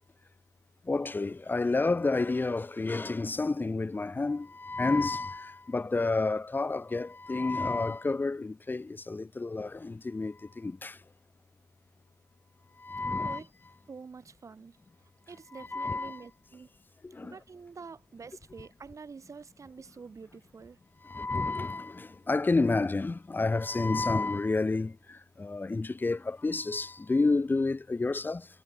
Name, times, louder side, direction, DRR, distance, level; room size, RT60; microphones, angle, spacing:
voice 1, 0.9-11.0 12.8-13.4 15.5-16.2 17.0-17.3 21.0-28.5, left 3 dB, 20° left, 1.9 m, -30 dB
voice 2, 13.9-14.8 15.3-16.7 17.2-20.8, right 5 dB, 35° right, 4.0 m, -47 dB
hypercardioid pair, 55°, 10 cm